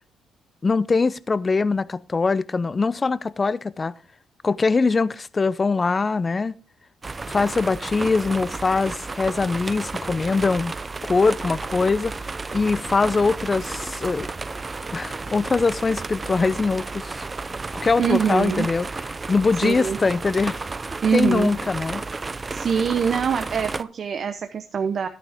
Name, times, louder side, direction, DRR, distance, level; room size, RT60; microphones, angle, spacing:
voice 1, 0.6-4.0 4.4-6.5 7.3-10.7 11.0-12.1 12.5-14.3 14.9-17.2 17.7-18.9 19.3-20.7 21.1-22.0, left 4 dB, 30° left, 0.5 m, -22 dB
sound 1, 7.0-23.8, right 3 dB, 25° right, 0.5 m, -32 dB
voice 2, 18.0-18.7 19.6-20.0 21.0-21.5 22.5-25.1, right 7 dB, 50° right, 0.8 m, -24 dB
10.5 x 9.3 x 3.5 m
cardioid pair, 90°, 0 cm